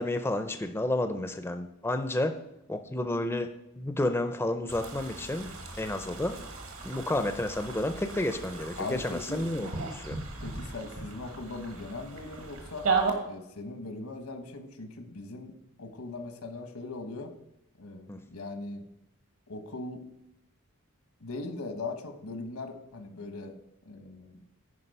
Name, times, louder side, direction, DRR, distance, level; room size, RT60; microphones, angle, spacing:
voice 1, 0.0-2.3 2.7-3.5 3.8-6.4 6.8-10.2 18.1-18.2, left 1 dB, 10° left, 8 dB, 0.4 m, -31 dB
sound 1, 4.7-13.1, right 4 dB, 70° right, 1.6 m, -36 dB
voice 2, 8.8-9.5 10.4-12.9 13.2-15.5 15.8-17.3 17.8-18.8 19.5-20.0 21.2-23.6 23.8-24.4, left 3 dB, 85° left, 7 dB, 1.1 m, -39 dB
9.8 x 5.0 x 5.4 m, 0.83 s
head